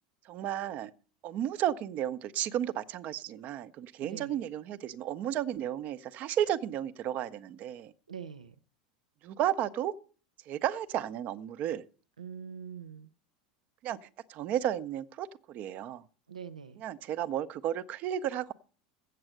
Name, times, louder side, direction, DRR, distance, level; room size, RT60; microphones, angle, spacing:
voice 1, 0.2-0.9 1.2-7.9 9.2-9.9 10.5-11.8 13.8-16.0 16.8-18.5, right 11 dB, 45° right, 0.7 m, -33 dB
voice 2, 4.0-4.4 8.1-8.6 12.2-13.1 16.3-16.8, right 7 dB, 85° right, 0.4 m, -43 dB
7.9 x 7.6 x 7.8 m
figure-of-eight pair, 80°, 4 cm